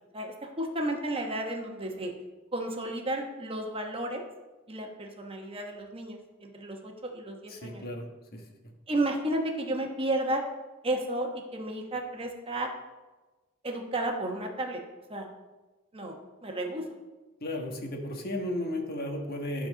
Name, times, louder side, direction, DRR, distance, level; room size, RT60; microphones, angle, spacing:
voice 1, 0.1-2.1 2.5-4.2 4.7-7.8 8.9-10.5 10.8-12.7 13.6-14.8 15.1-15.3 15.9-16.9, right 1 dB, 25° right, 2 dB, 1.1 m, -32 dB
voice 2, 7.5-8.1 8.3-8.7 17.4-19.7, left 1 dB, 50° left, 2 dB, 1.4 m, -34 dB
12.0 x 4.3 x 6.2 m, 1.2 s
head